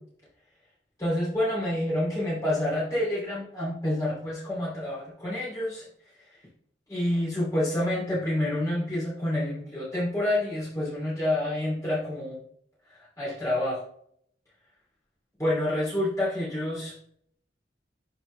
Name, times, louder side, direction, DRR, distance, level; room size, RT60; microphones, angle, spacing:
voice 1, 1.0-5.8 6.9-12.4 13.2-13.8 15.4-16.9, left 1 dB, 20° left, -9 dB, 2.9 m, -28 dB
11.5 x 4.5 x 3.3 m, 0.66 s
head